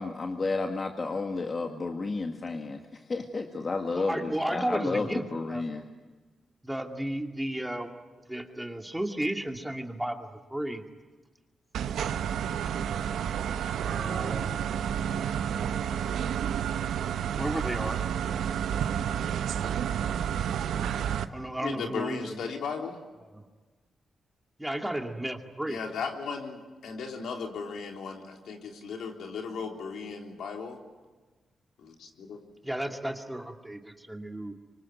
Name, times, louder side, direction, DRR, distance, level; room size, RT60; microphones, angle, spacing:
voice 1, 0.0-5.8, left 3 dB, 40° left, 4 dB, 1.9 m, -32 dB
voice 2, 4.0-5.6 6.6-7.9 8.2-10.8 13.8-14.9 17.4-18.0 21.3-22.4 23.3-23.4 24.6-25.8 32.6-34.5, right 1 dB, 5° right, 4 dB, 2.5 m, -33 dB
sound 1, 11.7-21.3, right 9 dB, 90° right, 1.0 m, -30 dB
voice 3, 21.6-23.0 25.7-30.8 31.8-32.4, left 5 dB, 85° left, 3 dB, 3.5 m, -36 dB
25.0 x 25.0 x 9.3 m, 1.3 s
cardioid pair, 85°, 0 cm